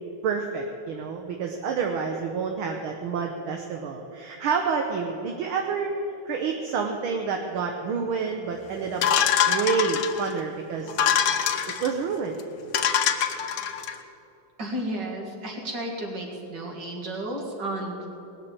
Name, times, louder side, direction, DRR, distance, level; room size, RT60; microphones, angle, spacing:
voice 1, 0.2-5.9 6.3-9.0 9.5-11.1 11.8-12.4, right 5 dB, 75° right, 3 dB, 1.8 m, -28 dB
sound 1, 9.0-10.3 10.9-11.9 12.4-12.5 12.7-13.9, left 8 dB, 70° left, 1.6 m, -24 dB
voice 2, 14.6-18.1, right 1 dB, 55° right, 0 dB, 2.7 m, -32 dB
19.5 x 6.6 x 8.6 m, 3.0 s
omnidirectional pair, 2.4 m